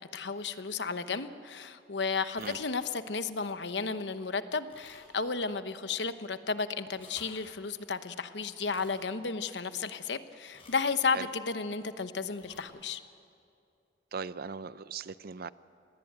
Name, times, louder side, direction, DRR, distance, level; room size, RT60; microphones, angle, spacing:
voice 1, 0.1-13.0, left 4 dB, 70° left, 11 dB, 1.0 m, -33 dB
sound 1, 2.3-2.7 3.2-3.3 3.8-3.9 4.7-5.3 5.5-5.6 6.8-7.4 8.6-9.0 10.5-10.9 12.3-12.6, left 3 dB, 35° left, 7.0 m, -55 dB
voice 2, 14.1-15.5, right 5 dB, 55° right, 16 dB, 0.6 m, -39 dB
26.5 x 19.5 x 8.9 m, 2.5 s
head